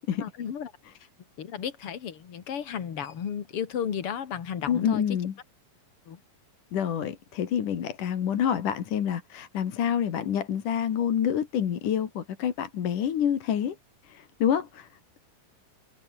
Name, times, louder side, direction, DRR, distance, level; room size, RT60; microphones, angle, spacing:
voice 1, 0.2-0.7 1.4-5.2 6.1-6.2, left 8 dB, 45° left, 2.7 m, -33 dB
voice 2, 4.7-5.4 6.7-13.8 14.0-14.9, left 9 dB, 70° left, 3.6 m, -27 dB
omnidirectional pair, 3.8 m